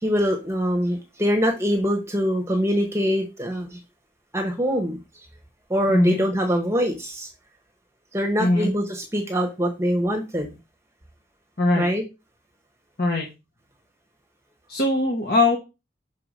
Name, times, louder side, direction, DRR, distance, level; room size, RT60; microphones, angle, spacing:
voice 1, 0.0-3.8 4.3-5.0 5.7-7.3 8.1-10.5 11.8-12.0, equal, 15° right, 4 dB, 1.1 m, -23 dB
voice 2, 5.9-6.2 8.4-8.7 11.6-11.9 13.0-13.3 14.7-15.6, left 2 dB, 55° left, 1 dB, 1.4 m, -21 dB
6.0 x 4.8 x 5.0 m, 0.27 s
head